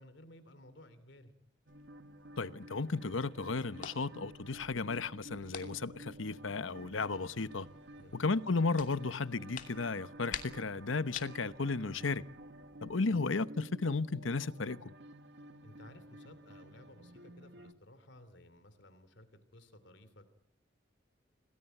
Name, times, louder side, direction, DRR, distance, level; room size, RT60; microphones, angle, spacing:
voice 1, 0.0-1.3 8.0-8.3 15.6-19.3 19.5-20.3, left 1 dB, 70° left, 3.0 m, -56 dB
sound 1, 1.7-12.9, left 7 dB, 40° left, 2.6 m, -51 dB
sound 2, 1.7-17.7, right 1 dB, 60° right, 1.6 m, -52 dB
voice 2, 2.4-7.7 8.1-12.2 12.8-14.9, left 3 dB, 90° left, 1.0 m, -34 dB
27.5 x 19.5 x 9.2 m
head